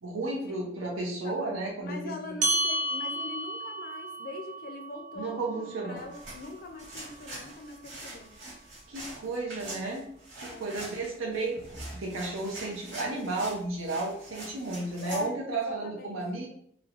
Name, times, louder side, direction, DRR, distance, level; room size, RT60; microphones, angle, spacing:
voice 1, 0.0-2.4 5.2-6.0 8.9-10.1 10.4-11.6 11.9-16.5, right 2 dB, 85° right, -1 dB, 0.6 m, -33 dB
voice 2, 1.8-8.3 10.5-10.7 15.1-16.2, left 3 dB, 50° left, 5 dB, 0.4 m, -42 dB
sound 1, 2.4-7.2, right 1 dB, 40° right, 0.5 m, -33 dB
sound 2, 6.0-15.3, right 1 dB, 70° right, 1.3 m, -44 dB
3.1 x 2.0 x 2.4 m, 0.66 s
head